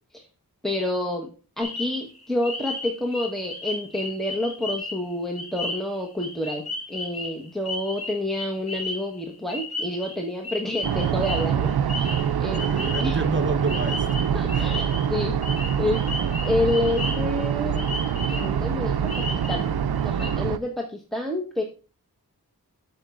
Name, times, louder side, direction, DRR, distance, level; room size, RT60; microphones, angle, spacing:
voice 1, 0.6-1.3 1.6-12.1 12.4-12.6 13.0-13.2 14.3-15.4 15.8-16.0 16.4-17.8 18.3-19.7 20.0-21.6, left 1 dB, ahead, 1.1 m, -28 dB
sound 1, 1.6-13.4 13.7-15.0 15.4-17.4 17.7-18.6 19.1-19.7 20.0-20.3, left 2 dB, 65° left, 1.9 m, -34 dB
sound 2, 10.8-20.6, right 8 dB, 75° right, 0.5 m, -25 dB
voice 2, 12.5-14.7, right 3 dB, 30° right, 0.9 m, -30 dB
9.7 x 6.8 x 2.5 m
wide cardioid pair, 50°, 39 cm